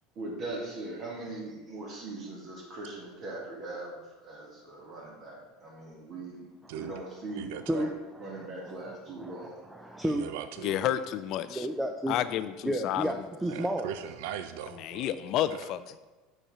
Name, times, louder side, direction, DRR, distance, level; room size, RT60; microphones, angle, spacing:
voice 1, 0.2-7.9 8.2-9.6, right 2 dB, 45° right, -3 dB, 1.8 m, -40 dB
voice 2, 7.3-7.9 10.0-10.8 13.5-15.1 15.5-15.7, right 9 dB, 75° right, 10 dB, 0.4 m, -39 dB
voice 3, 8.3-10.3 11.5-12.2 12.6-13.9, right 1 dB, 5° right, 4 dB, 0.5 m, -32 dB
voice 4, 10.6-11.7 12.1-13.1 14.8-16.0, left 11 dB, 55° left, 13 dB, 0.4 m, -30 dB
5.2 x 4.3 x 4.9 m, 1.2 s
supercardioid pair, 100°, 0 cm